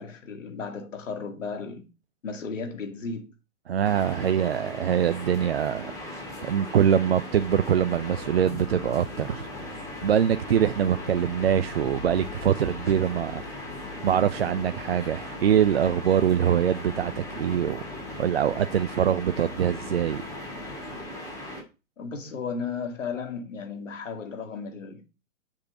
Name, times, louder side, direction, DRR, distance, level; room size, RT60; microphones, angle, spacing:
voice 1, 0.0-1.9 2.2-3.3 22.0-25.1, left 5 dB, 60° left, 2.3 m, -35 dB
voice 2, 3.7-9.5 10.0-13.6 14.0-17.8 18.2-20.2, right 9 dB, 50° right, 0.4 m, -24 dB
sound 1, 3.8-21.6, left 1 dB, 10° left, 2.2 m, -39 dB
sound 2, 7.3-21.1, left 5 dB, 25° left, 2.0 m, -44 dB
7.2 x 6.6 x 4.5 m
figure-of-eight pair, 120°, 42 cm